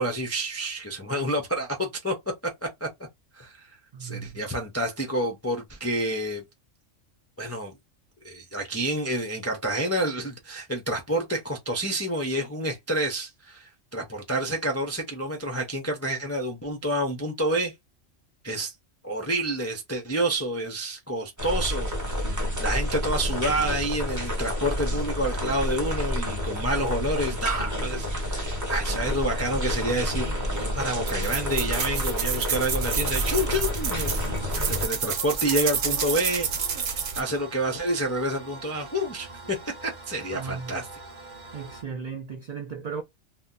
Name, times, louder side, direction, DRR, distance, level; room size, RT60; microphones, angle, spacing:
voice 1, 0.0-2.2 2.4-2.9 3.3-6.4 7.4-7.7 8.2-17.7 18.4-18.7 19.0-34.1 34.6-40.9, right 1 dB, 25° left, 0.3 m, -29 dB
voice 2, 3.9-4.4 40.3-40.8 41.5-43.0, right 5 dB, 65° right, 0.4 m, -36 dB
sound 1, 21.4-34.9, equal, 15° right, 0.8 m, -29 dB
sound 2, 26.9-41.8, right 2 dB, 45° right, 1.0 m, -45 dB
sound 3, 31.1-37.2, right 7 dB, 90° right, 1.1 m, -29 dB
2.7 x 2.1 x 3.6 m
omnidirectional pair, 1.3 m